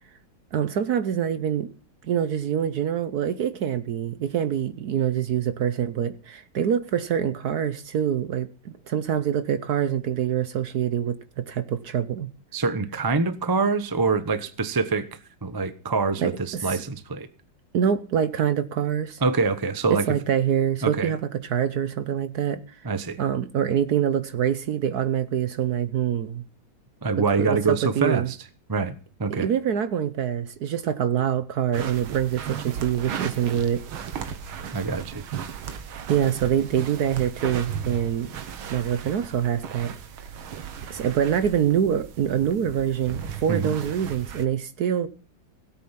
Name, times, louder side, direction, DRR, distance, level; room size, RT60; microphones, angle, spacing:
voice 1, 0.5-1.7 2.0-12.3 16.2-16.8 17.7-19.2 19.9-22.6 23.2-26.4 27.4-28.3 29.3-33.8 36.1-38.3 38.7-39.9 40.9-45.1, right 9 dB, 60° right, 1.1 m, -25 dB
voice 2, 12.5-15.1 15.4-17.3 19.2-20.0 20.8-21.1 22.8-23.2 27.0-28.4 28.7-28.9 29.2-29.5 34.7-35.2 43.5-43.7, right 4 dB, 25° right, 0.5 m, -25 dB
sound 1, 31.7-44.4, right 7 dB, 90° right, 2.1 m, -36 dB
17.0 x 8.6 x 5.8 m
omnidirectional pair, 2.2 m